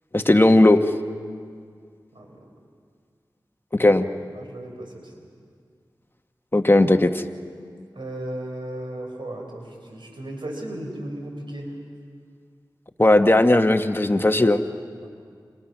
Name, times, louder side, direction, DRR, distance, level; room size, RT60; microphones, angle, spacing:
voice 1, 0.1-0.8 3.8-4.1 6.5-7.2 13.0-14.6, left 1 dB, 25° left, 6 dB, 1.2 m, -17 dB
voice 2, 2.1-2.5 3.8-3.9 4.3-5.1 7.9-11.7 15.0-15.1, right 1 dB, 80° right, 2 dB, 4.8 m, -35 dB
29.0 x 28.0 x 6.1 m, 2.1 s
wide cardioid pair, 50°, 8 cm